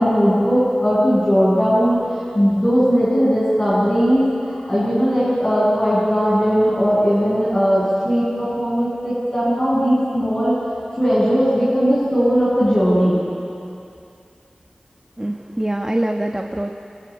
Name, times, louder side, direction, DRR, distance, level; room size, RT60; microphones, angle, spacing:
voice 1, 0.0-2.0 2.3-10.5 11.0-13.2, equal, 30° left, -10 dB, 7.9 m, -18 dB
voice 2, 15.2-16.7, right 1 dB, 20° right, 3 dB, 1.2 m, -24 dB
27.0 x 27.0 x 5.2 m, 2.6 s
wide cardioid pair, 60°, 3 cm